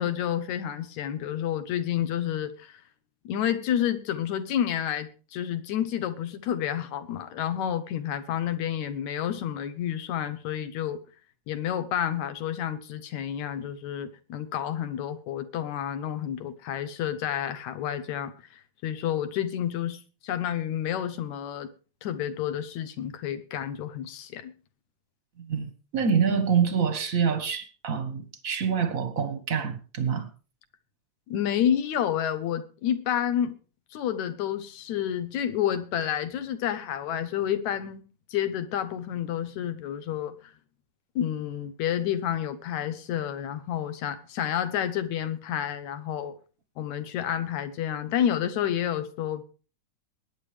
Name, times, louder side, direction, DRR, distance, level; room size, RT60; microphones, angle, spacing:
voice 1, 0.0-2.8 3.3-11.0 11.5-18.3 18.8-21.7 22.0-24.5 31.3-33.6 33.9-38.0 38.3-40.4 41.2-46.4 46.8-49.4, left 10 dB, 75° left, 2.4 m, -29 dB
voice 2, 25.5-30.3, right 6 dB, 50° right, 1.0 m, -26 dB
21.0 x 9.7 x 3.4 m
omnidirectional pair, 3.4 m